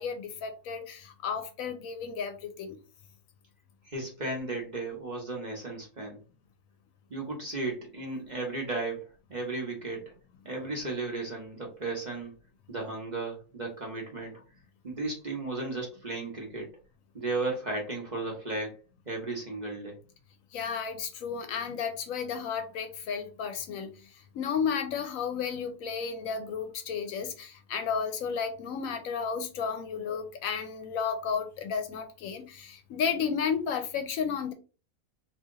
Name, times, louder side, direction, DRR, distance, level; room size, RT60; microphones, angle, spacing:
voice 1, 0.0-2.8 20.5-23.9 24.3-34.5, left 6 dB, 70° left, 0.9 m, -33 dB
voice 2, 3.8-6.2 7.1-9.0 9.3-10.1 10.4-12.3 12.7-14.3 14.8-16.7 17.1-18.8 19.1-20.0, right 3 dB, 35° right, 0.8 m, -34 dB
2.8 x 2.7 x 3.7 m
omnidirectional pair, 1.6 m